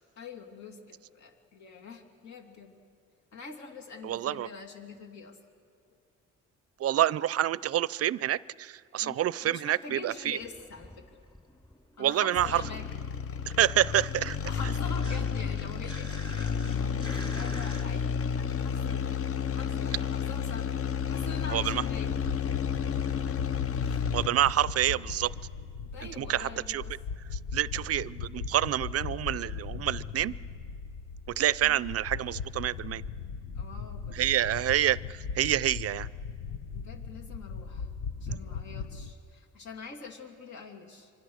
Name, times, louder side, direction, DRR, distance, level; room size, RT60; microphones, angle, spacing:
voice 1, 0.2-2.8 3.3-5.4 9.0-11.1 12.0-13.0 14.4-20.8 21.1-22.1 23.8-24.1 25.9-26.9 31.6-31.9 33.5-34.3 36.7-37.9 38.2-41.1, left 4 dB, 70° left, 2 dB, 2.9 m, -45 dB
voice 2, 4.0-4.5 6.8-10.4 12.0-12.6 13.5-14.4 21.5-21.8 24.1-25.3 26.2-26.8 27.3-30.3 31.4-33.0 34.1-36.1 38.3-38.4, right 12 dB, 50° right, 21 dB, 0.5 m, -27 dB
sound 1, 10.1-12.0 12.2-17.8, equal, 15° left, 3.3 m, -47 dB
sound 2, 12.4-24.5, left 7 dB, 50° left, 0.8 m, -31 dB
sound 3, 21.6-39.1, left 5 dB, 85° left, 1.0 m, -39 dB
25.5 x 24.5 x 6.4 m, 2.3 s
cardioid pair, 90°, 30 cm